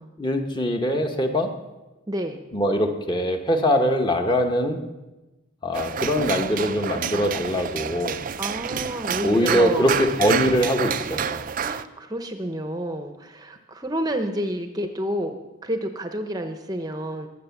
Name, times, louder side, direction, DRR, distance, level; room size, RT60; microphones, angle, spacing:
voice 1, 0.2-1.6 2.5-4.8 5.6-8.2 9.2-11.5, equal, 20° left, 4 dB, 1.1 m, -22 dB
voice 2, 2.1-2.4 8.4-10.0 11.6-15.3 15.6-17.3, right 1 dB, 20° right, 6 dB, 0.7 m, -29 dB
sound 1, 5.7-11.8, right 7 dB, 40° right, 0.4 m, -28 dB
21.5 x 7.4 x 7.1 m, 1.1 s
head